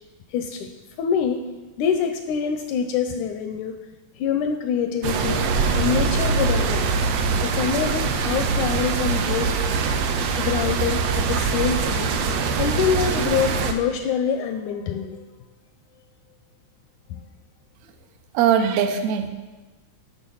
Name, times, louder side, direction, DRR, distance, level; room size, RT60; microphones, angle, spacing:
voice 1, 0.3-0.7 1.0-1.4 1.8-3.8 4.2-5.5 5.8-6.9 7.4-9.6 10.4-12.1 12.5-15.2 17.1-17.2, left 7 dB, 80° left, 7 dB, 1.8 m, -25 dB
sound 1, 5.0-13.7, right 5 dB, 90° right, 1.4 m, -23 dB
voice 2, 18.3-19.3, right 8 dB, 75° right, 7 dB, 1.7 m, -20 dB
11.5 x 6.3 x 5.6 m, 1.2 s
omnidirectional pair, 3.9 m